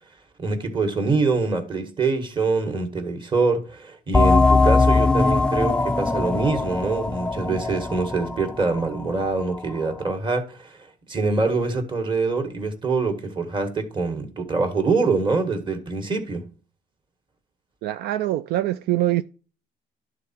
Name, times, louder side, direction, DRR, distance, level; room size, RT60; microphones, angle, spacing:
voice 1, 0.4-16.4, right 3 dB, 30° right, 1.7 m, -24 dB
sound 1, 4.1-9.4, left 3 dB, 5° left, 0.4 m, -20 dB
voice 2, 17.8-19.2, right 14 dB, 70° right, 0.4 m, -23 dB
11.5 x 3.8 x 4.4 m
cardioid pair, 110°, 17 cm